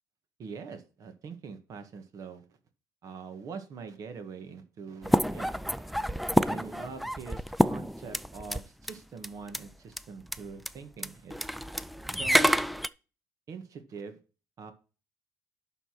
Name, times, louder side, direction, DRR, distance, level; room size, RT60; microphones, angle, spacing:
voice 1, 0.4-2.5 3.0-11.3 12.1-12.6 13.5-14.2 14.6-14.7, right 5 dB, 50° right, 1.7 m, -44 dB
sound 1, 5.0-8.6 8.9-9.0 9.2-9.6 10.0-10.1 10.2-10.4 10.7-10.8 11.0-12.9, equal, ahead, 0.4 m, -28 dB
11.5 x 3.9 x 6.1 m
cardioid pair, 110°, 7 cm